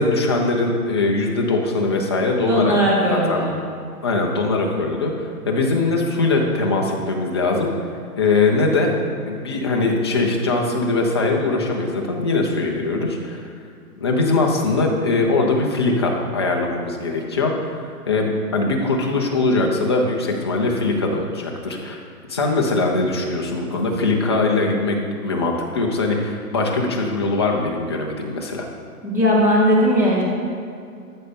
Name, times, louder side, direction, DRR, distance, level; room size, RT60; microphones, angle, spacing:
voice 1, 0.0-2.7 3.1-3.4 4.0-7.7 8.2-8.9 9.2-13.4 14.0-22.0 22.3-25.0 25.2-28.7, left 3 dB, 15° left, 0 dB, 0.6 m, -21 dB
voice 2, 2.5-3.6 29.0-30.2, equal, 5° right, -5 dB, 1.2 m, -18 dB
13.0 x 6.5 x 5.2 m, 2.3 s
hypercardioid pair, 160°, 46 cm